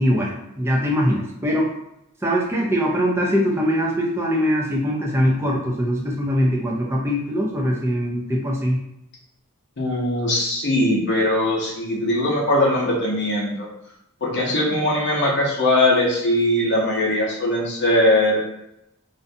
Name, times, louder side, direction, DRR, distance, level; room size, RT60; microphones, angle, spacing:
voice 1, 0.0-1.7 2.2-8.8, equal, 10° right, -2 dB, 0.4 m, -22 dB
voice 2, 9.8-13.7 14.2-18.4, left 1 dB, 50° left, -2 dB, 0.7 m, -20 dB
2.5 x 2.2 x 2.6 m, 0.81 s
head